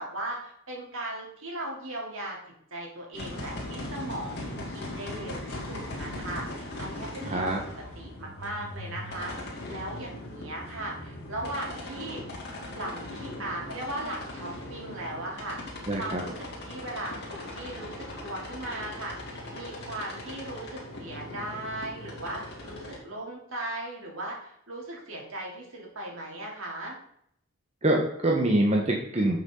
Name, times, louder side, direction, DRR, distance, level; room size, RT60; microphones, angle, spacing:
voice 1, 0.0-2.4 2.7-12.2 12.7-15.6 16.0-27.0, right 1 dB, 65° right, -2 dB, 3.5 m, -38 dB
sound 1, 3.1-23.0, left 1 dB, 50° left, 3.1 m, -39 dB
voice 2, 7.2-7.6 15.9-16.2 27.8-29.4, right 1 dB, 30° right, 0 dB, 1.2 m, -25 dB
11.5 x 7.0 x 3.9 m, 0.71 s
head